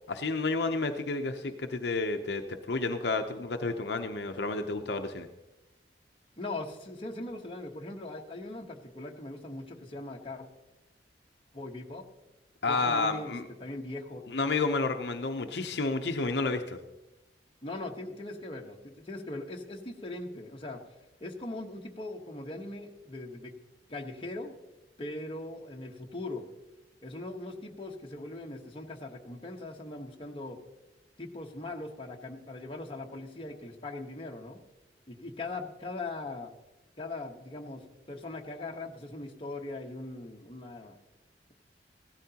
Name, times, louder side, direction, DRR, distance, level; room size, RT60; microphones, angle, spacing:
voice 1, 0.1-5.3 12.6-13.5 14.3-16.8, left 3 dB, 65° left, 6 dB, 0.7 m, -30 dB
voice 2, 6.4-10.5 11.5-12.0 12.7-13.3 13.6-14.3 17.6-20.8 21.2-23.5 23.9-24.5 25.0-26.4 27.0-30.6 31.2-34.6 35.1-36.5 37.0-37.8 38.1-40.9, left 2 dB, 30° left, 1 dB, 1.1 m, -40 dB
16.0 x 13.0 x 2.9 m, 0.99 s
head